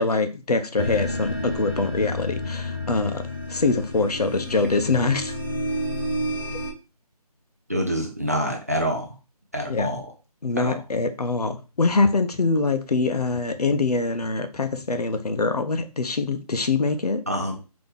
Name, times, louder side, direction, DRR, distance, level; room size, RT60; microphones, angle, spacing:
voice 1, 0.0-3.2 3.5-5.3 9.7-9.9 10.4-17.2, left 3 dB, 75° left, 8 dB, 0.8 m, -24 dB
sound 1, 0.8-6.7, left 1 dB, 40° left, 0.6 m, -30 dB
voice 2, 7.7-9.1 9.5-10.1 10.6-10.8 17.3-17.6, equal, 25° right, 2 dB, 0.5 m, -26 dB
4.1 x 2.8 x 3.4 m, 0.31 s
figure-of-eight pair, 175°, 20 cm